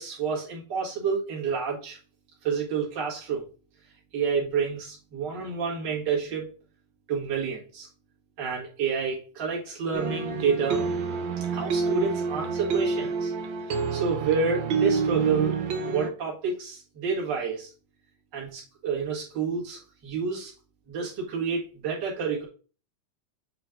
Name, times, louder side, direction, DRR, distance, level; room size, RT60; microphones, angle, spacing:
voice 1, 0.0-2.0 2.4-3.4 4.1-6.5 7.1-7.9 8.4-10.8 11.5-13.3 13.6-15.6 15.9-17.7 18.3-20.5 20.9-22.4, right 5 dB, 40° right, -5 dB, 2.4 m, -29 dB
sound 1, 9.9-16.1, right 5 dB, 85° right, 1.0 m, -28 dB
7.9 x 4.5 x 3.8 m, 0.36 s
omnidirectional pair, 3.4 m